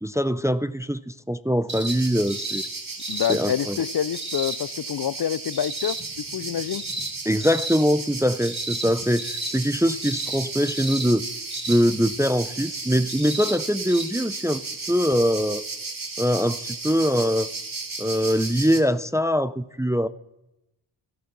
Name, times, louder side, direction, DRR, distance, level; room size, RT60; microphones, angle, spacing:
voice 1, 0.0-2.6 3.3-3.8 7.3-11.2 11.7-14.6 14.9-15.6 16.2-17.5 18.0-20.1, equal, 5° right, 14 dB, 0.4 m, -23 dB
sound 1, 1.7-2.0 2.3-2.7 3.0-3.4 4.1-4.6 5.5-6.0 6.7-7.1 7.4-7.8 8.4-8.9 9.2-9.5 10.0-10.4 10.7-11.1 11.5-11.8 13.1-13.6 13.9-14.0 15.1-15.2, right 2 dB, 25° right, 2.8 m, -33 dB
sound 2, 1.9-18.8, right 3 dB, 45° right, 1.9 m, -34 dB
voice 2, 3.1-6.8, left 9 dB, 55° left, 19 dB, 0.5 m, -27 dB
14.0 x 12.0 x 6.1 m, 0.91 s
cardioid pair, 60°, 46 cm